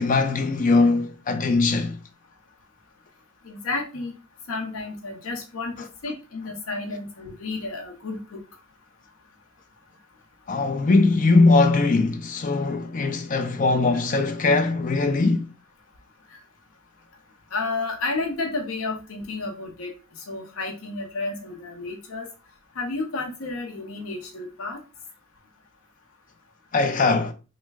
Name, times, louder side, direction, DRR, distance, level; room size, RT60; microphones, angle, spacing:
voice 1, 0.0-2.0 10.5-15.5 26.7-27.3, left 3 dB, 40° left, 0.4 m, -20 dB
voice 2, 3.4-4.1 4.5-8.4 16.3-16.4 17.5-19.9 20.3-22.3 22.8-24.8, left 3 dB, 80° left, 0.6 m, -31 dB
3.1 x 2.1 x 3.4 m
head